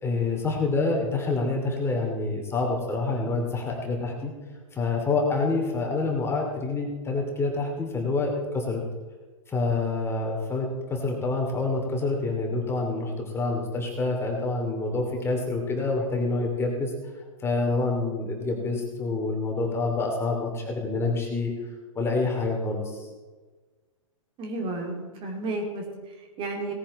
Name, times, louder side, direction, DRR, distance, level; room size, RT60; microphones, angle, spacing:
voice 1, 0.0-4.3 4.7-8.8 9.5-16.9 17.4-21.5 21.9-23.1, left 3 dB, 15° left, 0 dB, 2.7 m, -27 dB
voice 2, 24.4-26.7, right 2 dB, 30° right, 2 dB, 2.8 m, -32 dB
18.0 x 9.9 x 4.2 m, 1.3 s
hypercardioid pair, 110°, 17 cm